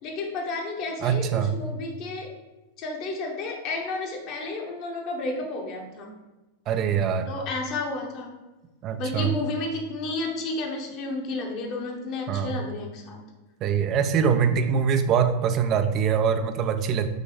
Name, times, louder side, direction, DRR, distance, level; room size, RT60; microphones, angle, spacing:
voice 1, 0.0-2.3 2.8-6.1 7.3-8.3 9.0-13.2, left 2 dB, 40° left, 1 dB, 1.1 m, -32 dB
voice 2, 1.0-1.6 6.7-7.3 8.8-9.4 12.3-12.6 13.6-17.1, right 7 dB, 35° right, 8 dB, 0.5 m, -23 dB
6.4 x 3.0 x 4.8 m, 1.1 s
figure-of-eight pair, 90°, 0 cm